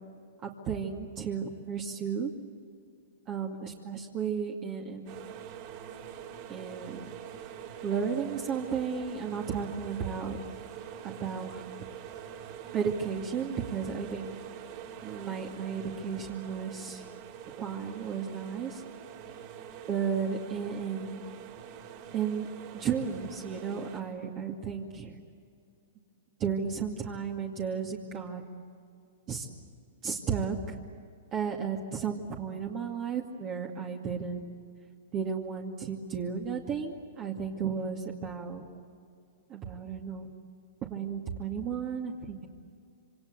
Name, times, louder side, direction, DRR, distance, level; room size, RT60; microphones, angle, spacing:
voice 1, 0.4-2.3 3.3-5.1 6.5-7.1 7.8-10.4 11.0-11.7 12.7-14.3 15.0-17.0 17.6-18.8 19.9-21.3 22.1-22.5 22.7-25.2 26.4-28.4 29.3-29.5 30.0-30.8 31.3-34.5 35.1-38.7 39.5-40.3 40.9-42.5, right 6 dB, 30° right, 0 dB, 2.3 m, -33 dB
sound 1, 5.1-24.0, right 9 dB, 50° right, 4.4 m, -45 dB
27.0 x 25.5 x 8.3 m, 2.4 s
hypercardioid pair, 135°, 0 cm